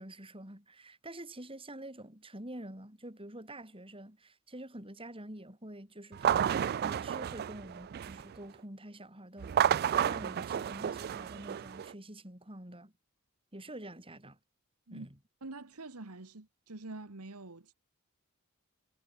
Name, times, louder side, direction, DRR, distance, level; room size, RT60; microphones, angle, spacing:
voice 1, 0.0-9.6 9.9-12.9 13.5-14.4 14.9-15.2, right 1 dB, 25° right, 5.7 m, -47 dB
sound 1, 6.1-8.3 9.4-11.9, right 9 dB, 45° right, 0.3 m, -31 dB
voice 2, 15.4-17.7, right 2 dB, 85° right, 1.6 m, -46 dB
head